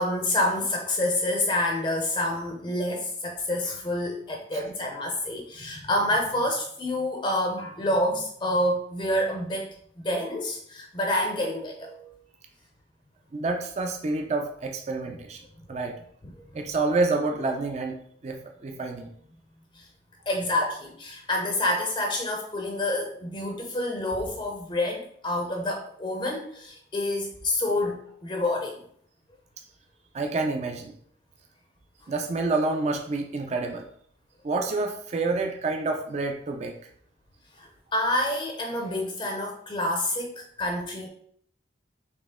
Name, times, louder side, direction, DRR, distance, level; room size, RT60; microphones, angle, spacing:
voice 1, 0.0-9.7 10.0-12.1 19.8-19.9 20.3-28.8 37.6-41.1, left 1 dB, 25° left, 2 dB, 0.5 m, -28 dB
voice 2, 13.3-15.4 15.7-15.9 16.5-18.0 18.2-19.1 30.1-30.9 32.1-33.8 34.4-36.8, right 3 dB, 35° right, 3 dB, 0.4 m, -28 dB
4.3 x 2.9 x 3.5 m, 0.63 s
head